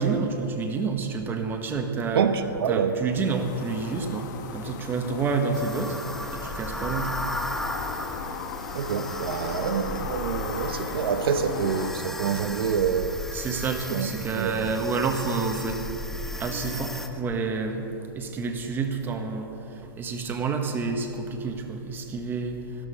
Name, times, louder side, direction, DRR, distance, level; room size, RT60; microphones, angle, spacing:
voice 1, 0.0-2.3 2.7-6.0 6.3-7.2 13.3-15.8 16.4-17.8 18.1-19.5 20.0-22.6, right 4 dB, 15° right, 1.3 m, -28 dB
voice 2, 2.1-3.0 8.7-13.2 13.9-14.8, right 7 dB, 80° right, 1.0 m, -27 dB
sound 1, 3.1-11.9, left 6 dB, 50° left, 1.3 m, -37 dB
sound 2, 5.5-17.1, left 1 dB, ahead, 0.6 m, -36 dB
14.0 x 13.0 x 5.6 m
hypercardioid pair, 150°, 12 cm